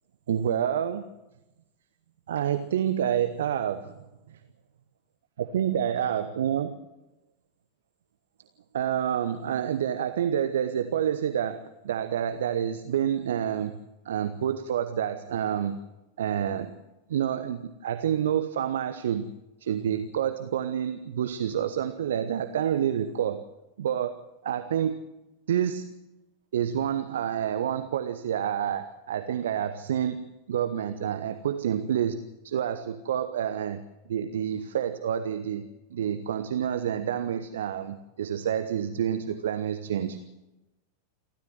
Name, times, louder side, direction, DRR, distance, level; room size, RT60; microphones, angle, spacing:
voice 1, 0.3-1.1 2.3-4.0 4.3-4.4 5.4-6.7 8.7-13.8 14.0-15.8 16.2-16.8 17.1-19.3 19.6-23.4 23.8-25.0 25.5-25.9 26.5-33.8 34.1-35.6 35.9-40.2, right 9 dB, 60° right, 10 dB, 1.0 m, -28 dB
28.0 x 13.0 x 7.6 m, 1.0 s
figure-of-eight pair, 90°, 0 cm